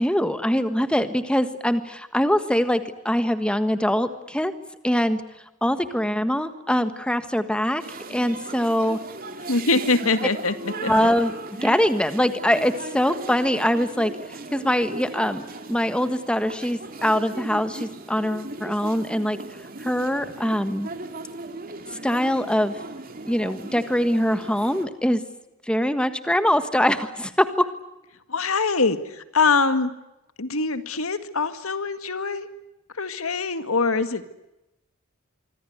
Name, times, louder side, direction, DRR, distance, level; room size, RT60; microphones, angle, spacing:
voice 1, 0.0-4.5 4.8-5.2 5.6-7.8 8.1-9.0 10.9-11.3 11.6-19.4 19.8-20.9 22.0-22.8 23.2-25.2 25.7-27.6, equal, 5° left, 10 dB, 1.5 m, -23 dB
sound 1, 7.8-24.9, right 3 dB, 40° right, 3.1 m, -38 dB
voice 2, 9.5-10.5 10.8-11.1 28.3-29.9 30.4-32.5 33.0-34.2, left 4 dB, 80° left, 11 dB, 2.0 m, -23 dB
25.5 x 25.0 x 8.0 m, 0.94 s
head